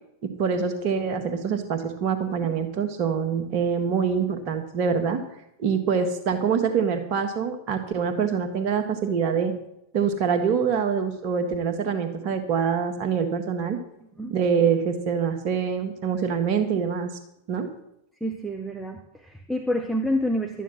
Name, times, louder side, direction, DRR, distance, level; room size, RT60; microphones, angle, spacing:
voice 1, 0.2-5.2 5.6-9.5 9.9-13.8 14.3-17.1 17.5-17.7, right 6 dB, 45° right, 6 dB, 1.7 m, -25 dB
voice 2, 18.2-20.6, equal, ahead, 2 dB, 1.0 m, -28 dB
13.0 x 9.2 x 6.3 m, 0.77 s
figure-of-eight pair, 90°, 0 cm